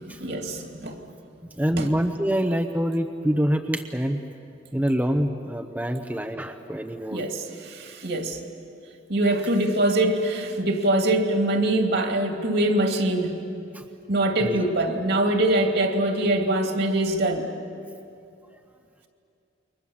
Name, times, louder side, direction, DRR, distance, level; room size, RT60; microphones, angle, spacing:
voice 1, 0.0-1.0 1.8-1.9 7.1-8.4 9.1-13.3 14.1-17.5, right 1 dB, 55° right, 3 dB, 2.6 m, -23 dB
voice 2, 1.6-4.2 4.7-7.2 13.7-13.8 14.4-14.6, equal, 10° right, 4 dB, 0.8 m, -25 dB
29.0 x 23.5 x 7.3 m, 2.6 s
head